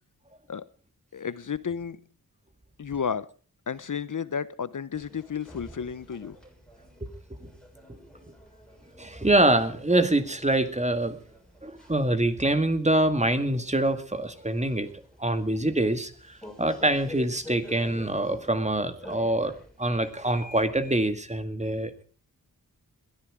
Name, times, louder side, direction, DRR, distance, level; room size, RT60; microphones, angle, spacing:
voice 1, 1.1-2.0 2.8-3.3 3.7-6.4, left 7 dB, 60° left, 17 dB, 0.9 m, -32 dB
sound 1, 4.9-21.1, left 1 dB, ahead, 6.6 m, -49 dB
voice 2, 9.0-11.2 11.6-14.9 15.2-19.5 19.8-22.0, right 1 dB, 20° right, 10 dB, 2.2 m, -25 dB
21.0 x 13.5 x 5.0 m, 0.40 s
wide cardioid pair, 95°, 35 cm